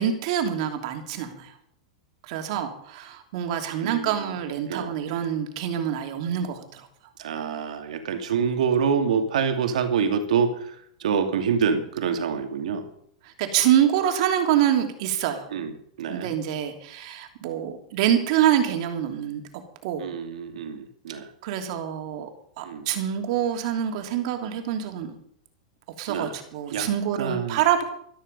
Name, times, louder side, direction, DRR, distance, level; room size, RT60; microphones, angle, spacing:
voice 1, 0.0-1.5 2.3-6.9 13.2-15.5 16.1-19.4 19.8-20.0 21.4-22.3 22.6-25.1 26.0-27.8, right 10 dB, 60° right, 5 dB, 3.0 m, -26 dB
voice 2, 3.8-4.3 4.7-4.9 7.2-10.7 11.0-12.8 15.5-16.3 20.0-21.3 22.6-22.9 26.1-26.3 26.7-26.9 27.2-27.6, right 6 dB, 80° right, 6 dB, 2.4 m, -26 dB
13.5 x 13.5 x 5.4 m, 0.68 s
hypercardioid pair, 130°, 4 cm